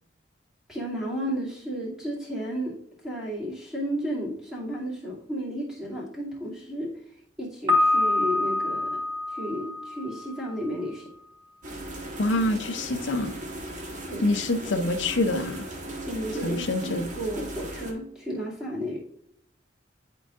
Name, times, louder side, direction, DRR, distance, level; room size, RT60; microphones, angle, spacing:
voice 1, 0.7-2.7 3.0-6.9 7.4-9.0 9.3-11.1 14.1-14.3 16.0-19.0, equal, 5° right, -6 dB, 2.3 m, -33 dB
Piano, 7.7-10.6, left 2 dB, 25° right, 2.7 m, -26 dB
sound 1, 11.6-17.9, right 1 dB, 40° right, 1.3 m, -37 dB
voice 2, 12.2-13.3 14.2-15.6 16.4-17.1, left 2 dB, 70° left, 7 dB, 0.6 m, -26 dB
10.5 x 4.6 x 2.4 m, 0.72 s
head